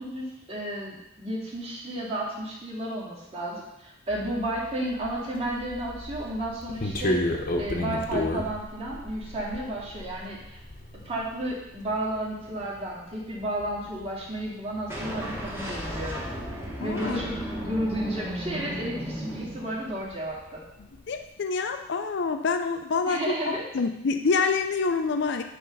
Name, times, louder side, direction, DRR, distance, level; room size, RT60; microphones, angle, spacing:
voice 1, 0.0-7.2 7.6-10.6 11.0-16.2 16.8-20.6 23.1-23.6, right 1 dB, 30° right, -6 dB, 2.2 m, -32 dB
sound 1, 4.1-19.6 19.9-21.2, left 1 dB, 45° left, 0.9 m, -35 dB
sound 2, 14.9-20.0, equal, 15° right, 1.3 m, -35 dB
voice 2, 16.8-17.2 21.1-23.2 23.7-25.4, left 4 dB, 60° left, 7 dB, 0.5 m, -26 dB
10.0 x 3.4 x 5.4 m, 0.85 s
head